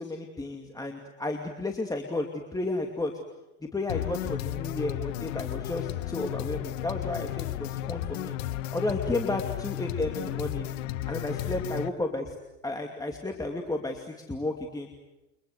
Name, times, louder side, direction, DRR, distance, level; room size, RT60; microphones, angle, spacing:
voice 1, 0.0-3.1 3.6-8.4 8.7-10.7 11.0-12.3 12.6-14.9, left 2 dB, 10° left, 3 dB, 2.6 m, -32 dB
sound 1, 3.9-11.9, left 14 dB, 80° left, 1.3 m, -33 dB
29.5 x 25.0 x 8.0 m, 0.97 s
supercardioid pair, 125°, 38 cm